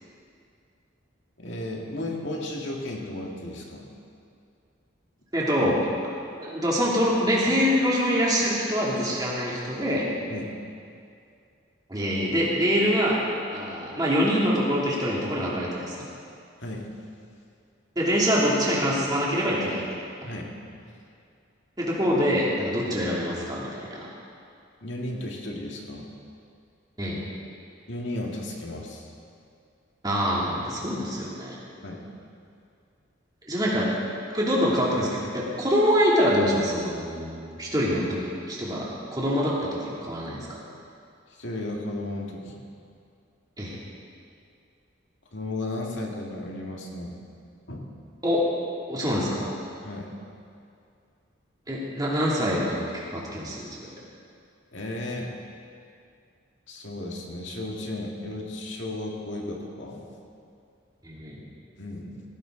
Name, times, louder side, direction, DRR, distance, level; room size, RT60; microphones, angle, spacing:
voice 1, 1.4-3.9 10.3-10.5 16.6-16.9 20.2-20.9 24.8-26.1 27.9-29.1 31.8-32.1 41.3-42.6 45.3-47.2 47.7-47.8 49.8-50.1 54.7-55.3 56.7-60.1 61.8-62.2, left 1 dB, 65° left, 0 dB, 2.1 m, -34 dB
voice 2, 5.3-5.8 6.4-10.0 11.9-13.2 13.5-15.9 18.0-19.8 21.8-24.1 27.0-27.2 30.0-31.6 33.4-33.9 34.3-40.6 43.6-43.8 48.2-48.5 48.9-49.5 51.7-53.9 61.0-61.4, equal, 20° right, -6 dB, 2.9 m, -25 dB
17.5 x 16.0 x 3.9 m, 2.4 s
head